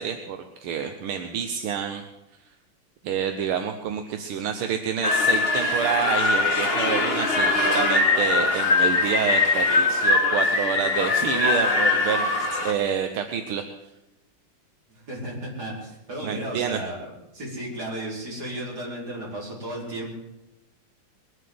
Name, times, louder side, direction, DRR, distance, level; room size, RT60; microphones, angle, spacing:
voice 1, 0.0-2.0 3.0-13.6 16.2-16.8, right 8 dB, 80° right, 6 dB, 1.8 m, -28 dB
sound 1, 5.0-12.7, left 3 dB, 30° left, 1.7 m, -22 dB
voice 2, 14.9-17.0 17.3-20.1, right 1 dB, 45° right, -4 dB, 5.2 m, -34 dB
21.5 x 8.1 x 7.8 m, 0.93 s
omnidirectional pair, 2.4 m